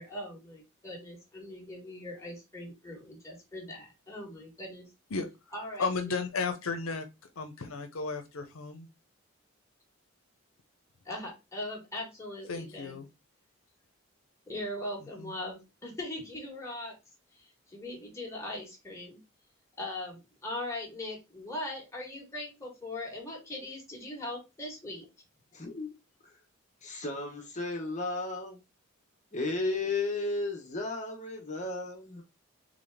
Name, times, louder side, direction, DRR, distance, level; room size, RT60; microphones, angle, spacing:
voice 1, 0.0-4.8 5.5-6.2 11.0-13.0 14.5-16.9 17.3-19.2 19.8-25.0, left 1 dB, 15° left, 1.6 m, -40 dB
voice 2, 5.8-7.0 7.4-8.9 12.5-13.1 15.2-15.3, left 4 dB, 80° left, 0.7 m, -34 dB
voice 3, 25.5-25.9 26.2-26.3 26.8-28.6 29.3-32.2, left 2 dB, 35° left, 1.0 m, -34 dB
4.0 x 3.5 x 3.4 m
head